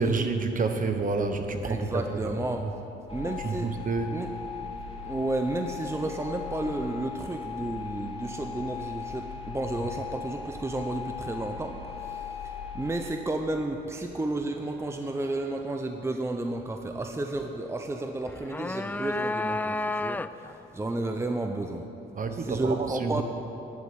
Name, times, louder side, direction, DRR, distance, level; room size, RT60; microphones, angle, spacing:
voice 1, 0.0-2.7 3.4-4.2 9.8-9.9 22.1-23.2, right 4 dB, 40° right, 6 dB, 1.3 m, -29 dB
voice 2, 1.6-2.6 3.1-3.7 4.1-4.3 5.0-20.5 20.7-21.9 22.3-23.2, right 2 dB, 15° right, 5 dB, 0.7 m, -32 dB
sound 1, 3.1-13.0, left 6 dB, 30° left, 2.8 m, -38 dB
sound 2, 18.3-20.6, left 2 dB, 10° left, 0.3 m, -31 dB
12.0 x 8.1 x 8.8 m, 2.9 s
cardioid pair, 90°, 20 cm